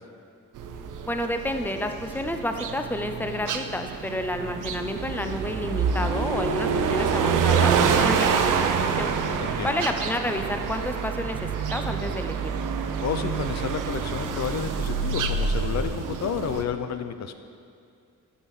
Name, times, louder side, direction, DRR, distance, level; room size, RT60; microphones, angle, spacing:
sound 1, 0.6-16.6, right 6 dB, 75° right, 0.8 m, -27 dB
voice 1, 1.0-9.1 9.6-12.5, left 1 dB, 5° left, 6 dB, 0.6 m, -30 dB
voice 2, 9.4-9.7 13.0-17.3, left 7 dB, 60° left, 9 dB, 0.7 m, -31 dB
12.5 x 6.5 x 5.6 m, 2.3 s
cardioid pair, 120°, 31 cm